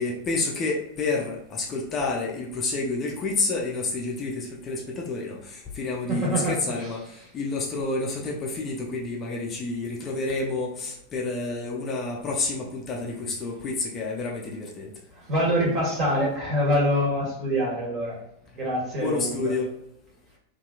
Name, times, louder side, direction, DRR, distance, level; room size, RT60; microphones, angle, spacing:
voice 1, 0.0-14.9 19.0-19.7, left 3 dB, 25° left, -1 dB, 0.5 m, -29 dB
voice 2, 6.1-7.3 15.1-18.1 18.5-19.5, equal, 35° right, -5 dB, 1.4 m, -25 dB
2.7 x 2.5 x 2.3 m, 0.81 s
figure-of-eight pair, 90°, 0 cm